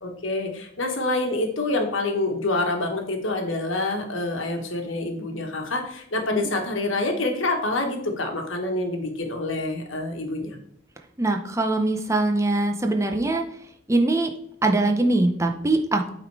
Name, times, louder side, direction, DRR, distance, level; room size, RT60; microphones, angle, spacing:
voice 1, 0.0-10.6, left 2 dB, 85° left, 3 dB, 1.4 m, -27 dB
voice 2, 11.2-13.5 13.9-14.3 14.6-16.1, right 2 dB, 15° right, 5 dB, 0.7 m, -22 dB
8.4 x 3.9 x 4.7 m, 0.68 s
head